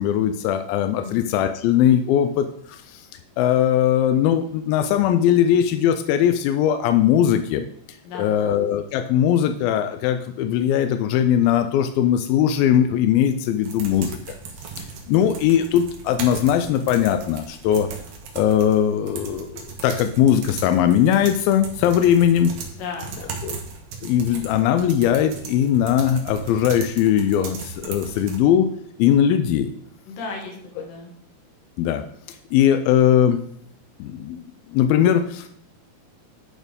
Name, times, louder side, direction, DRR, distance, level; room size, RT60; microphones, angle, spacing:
voice 1, 0.0-3.1 3.4-7.7 8.1-14.2 14.8-17.9 18.4-22.5 23.4-23.6 24.0-28.7 29.0-29.7 31.8-32.0 32.5-33.4 34.0-34.4 34.7-35.5, left 10 dB, 85° left, 8 dB, 2.1 m, -20 dB
voice 2, 8.0-8.5 22.7-23.4 30.1-31.1, left 4 dB, 60° left, 1 dB, 3.2 m, -35 dB
sound 1, 13.6-28.4, right 5 dB, 65° right, 2.8 m, -37 dB
10.5 x 4.4 x 5.1 m, 0.67 s
omnidirectional pair, 4.7 m